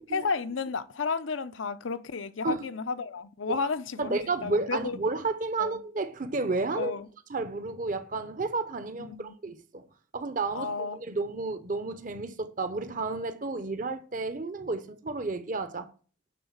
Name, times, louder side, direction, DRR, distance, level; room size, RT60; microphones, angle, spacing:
voice 1, 0.1-5.0 5.6-5.8 6.8-7.1 9.0-9.3 10.5-11.0, left 4 dB, 85° left, 0.7 m, -32 dB
voice 2, 4.0-6.9 7.3-9.8 10.1-15.9, right 3 dB, 45° right, 0.8 m, -31 dB
12.0 x 4.0 x 7.2 m
head